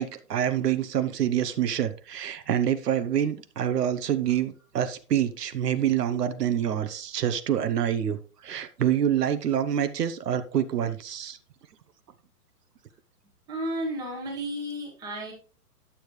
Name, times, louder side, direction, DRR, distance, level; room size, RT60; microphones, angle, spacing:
voice 1, 0.0-11.4, right 10 dB, 75° right, 11 dB, 1.1 m, -26 dB
voice 2, 13.5-15.3, right 1 dB, 10° right, -1 dB, 1.3 m, -32 dB
10.5 x 7.0 x 3.2 m, 0.37 s
hypercardioid pair, 175°, 48 cm